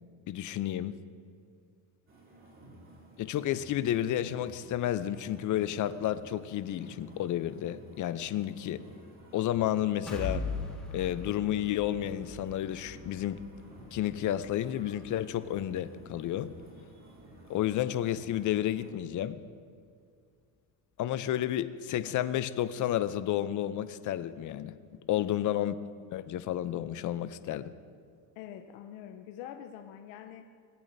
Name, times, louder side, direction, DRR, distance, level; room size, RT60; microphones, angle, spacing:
voice 1, 0.3-1.0 3.2-8.8 9.3-10.4 10.9-13.5 13.9-16.5 17.5-19.4 21.0-24.7 25.1-25.7 26.1-27.7, left 12 dB, 40° left, 13 dB, 0.6 m, -31 dB
sound 1, 2.1-18.9, right 1 dB, 25° right, 2.8 m, -53 dB
sound 2, 10.1-17.8 18.2-18.4 18.8-18.9, left 3 dB, ahead, 1.6 m, -42 dB
voice 2, 25.1-25.6 28.4-30.4, left 10 dB, 75° left, 4 dB, 0.8 m, -45 dB
19.0 x 8.4 x 2.7 m, 2.2 s
supercardioid pair, 105°, 47 cm